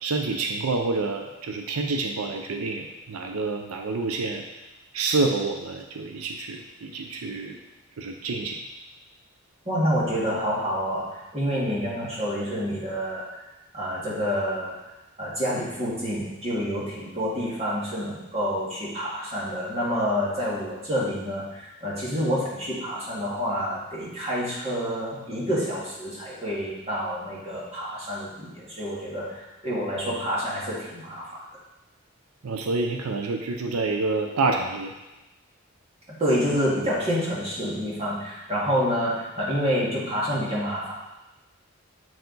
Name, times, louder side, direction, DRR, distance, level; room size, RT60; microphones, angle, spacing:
voice 1, 0.0-4.4 4.9-7.6 8.0-8.6 32.4-34.9, right 3 dB, 90° right, 3 dB, 0.5 m, -28 dB
voice 2, 9.7-13.4 13.7-14.8 15.2-31.4 36.2-40.9, equal, 30° right, -7 dB, 2.0 m, -28 dB
7.7 x 4.5 x 3.9 m, 1.0 s
head